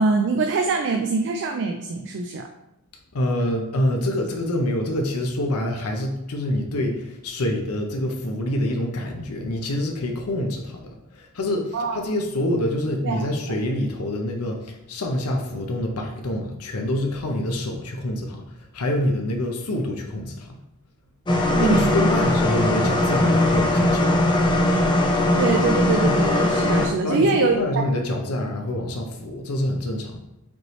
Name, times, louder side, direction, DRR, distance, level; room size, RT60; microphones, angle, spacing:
voice 1, 0.0-2.5 11.7-12.0 13.0-13.3 21.5-22.1 25.3-27.8, right 4 dB, 55° right, 4 dB, 0.4 m, -23 dB
voice 2, 3.1-10.8 11.1-18.4 18.7-20.5 21.6-24.1 27.0-30.2, left 1 dB, 75° left, 2 dB, 0.6 m, -26 dB
sound 1, 21.3-26.9, left 1 dB, 20° left, 0.6 m, -20 dB
5.1 x 3.1 x 3.1 m, 0.86 s
head